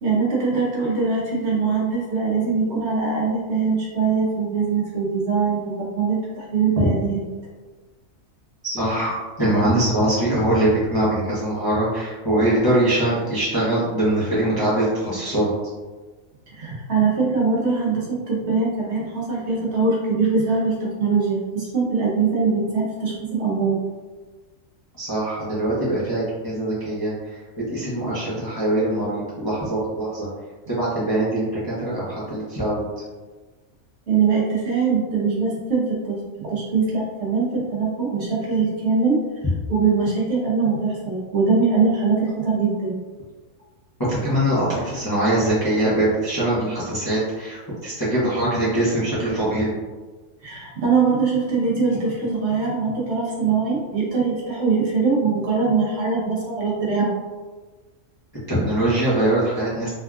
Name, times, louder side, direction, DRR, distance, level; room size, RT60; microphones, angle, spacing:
voice 1, 0.0-7.2 16.5-23.8 34.1-39.2 39.7-43.0 50.4-57.1, right 4 dB, 60° right, -4 dB, 0.9 m, -22 dB
voice 2, 8.6-15.5 24.9-27.4 27.7-30.3 30.7-32.8 44.1-49.8 58.5-59.9, right 1 dB, 25° left, -10 dB, 0.6 m, -22 dB
3.4 x 2.2 x 2.3 m, 1.3 s
omnidirectional pair, 1.4 m